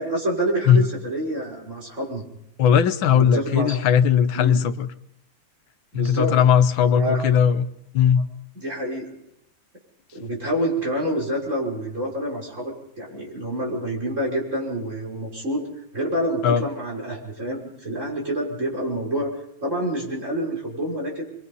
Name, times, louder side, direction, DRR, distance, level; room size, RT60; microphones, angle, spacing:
voice 1, 0.0-2.3 3.1-3.8 4.3-4.6 5.9-6.4 6.9-7.2 8.6-9.1 10.1-15.6 15.9-19.3 19.6-21.2, right 1 dB, 35° right, -2 dB, 6.2 m, -27 dB
voice 2, 2.6-4.9 5.9-7.7 7.9-8.3 16.4-16.7, left 8 dB, 80° left, 10 dB, 1.8 m, -18 dB
26.0 x 22.5 x 5.5 m, 0.78 s
omnidirectional pair, 2.1 m